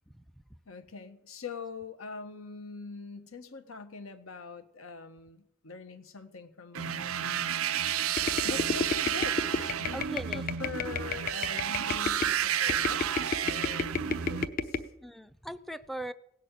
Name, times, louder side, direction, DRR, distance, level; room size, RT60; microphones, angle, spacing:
voice 1, 0.6-7.5 8.4-14.8, left 4 dB, 80° left, 8 dB, 1.3 m, -43 dB
sound 1, 6.8-14.5, right 9 dB, 80° right, 0.5 m, -31 dB
sound 2, 8.2-12.3 12.7-14.8, left 4 dB, 45° left, 0.9 m, -32 dB
voice 2, 9.9-10.5 15.0-16.1, right 1 dB, ahead, 14 dB, 0.5 m, -40 dB
17.0 x 6.5 x 9.0 m, 0.79 s
head